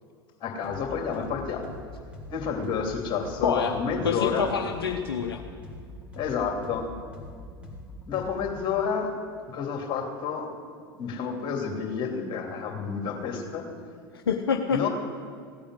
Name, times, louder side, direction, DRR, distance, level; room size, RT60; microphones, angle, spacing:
voice 1, 0.4-1.7 2.3-4.5 6.1-6.9 8.1-9.1 9.5-10.5 10.9-13.7 14.7-14.9, left 6 dB, 40° left, 2 dB, 2.8 m, -30 dB
sound 1, 0.6-0.8 1.1-4.8 5.1-8.6, left 2 dB, 10° right, 3.2 m, -43 dB
voice 2, 3.4-3.8 4.0-5.4 14.3-14.9, left 6 dB, 75° left, 4 dB, 0.8 m, -26 dB
16.5 x 8.5 x 7.8 m, 2.1 s
figure-of-eight pair, 75°, 13 cm